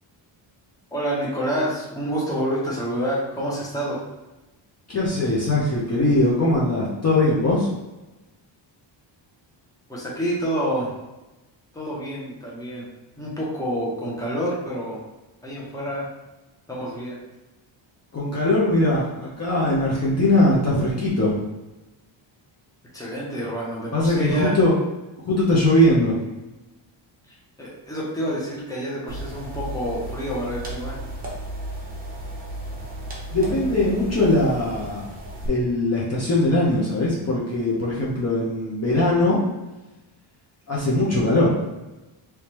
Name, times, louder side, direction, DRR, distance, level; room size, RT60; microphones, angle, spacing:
voice 1, 0.9-4.0 9.9-10.9 11.7-12.9 13.2-15.0 15.4-16.1 16.7-17.2 22.9-24.6 27.6-31.0, equal, 5° left, -5 dB, 0.9 m, -28 dB
voice 2, 4.9-7.7 18.1-21.5 23.9-24.8 25.3-26.2 33.3-35.1 35.5-39.4 40.7-41.5, left 1 dB, 30° left, -6 dB, 0.8 m, -20 dB
sound 1, 29.1-35.5, right 1 dB, 20° right, 0.9 m, -34 dB
3.3 x 3.2 x 3.0 m, 1.0 s
cardioid pair, 150°, 48 cm